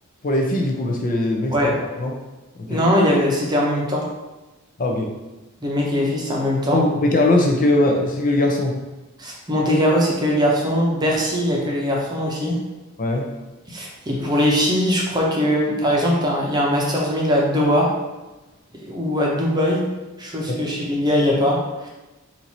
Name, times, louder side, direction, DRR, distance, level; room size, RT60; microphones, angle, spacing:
voice 1, 0.2-1.7 2.0-2.1 2.6-2.8 4.8-5.1 6.7-8.8 13.0-13.3 20.5-20.6, left 2 dB, 40° left, 0 dB, 0.5 m, -20 dB
voice 2, 2.7-4.1 5.6-6.8 9.2-12.6 13.7-17.9 18.8-19.8 20.2-21.9, equal, 20° right, -2 dB, 0.7 m, -21 dB
4.4 x 2.6 x 4.1 m, 1.1 s
head